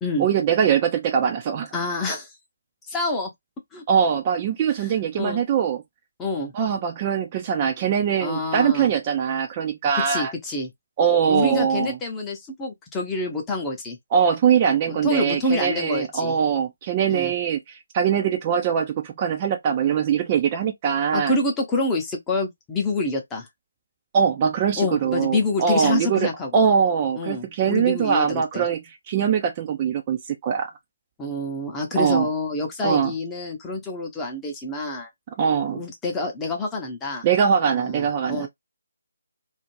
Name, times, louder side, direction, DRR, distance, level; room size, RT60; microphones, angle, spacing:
voice 1, 0.2-1.7 3.9-5.8 6.5-10.3 11.0-12.0 14.1-21.4 24.1-30.7 32.0-32.3 32.8-33.1 35.4-35.8 37.2-38.5, right 7 dB, 25° right, 0.3 m, -22 dB
voice 2, 1.7-2.3 2.9-3.3 3.7-3.8 5.2-5.4 6.2-6.5 8.2-8.9 9.9-10.7 11.3-14.0 14.9-16.4 17.1-17.3 21.1-23.5 24.8-26.7 27.2-28.7 31.2-35.1 35.7-37.2 37.7-38.5, left 2 dB, 10° left, 0.7 m, -27 dB
2.4 x 2.1 x 3.0 m
figure-of-eight pair, 150°, 0 cm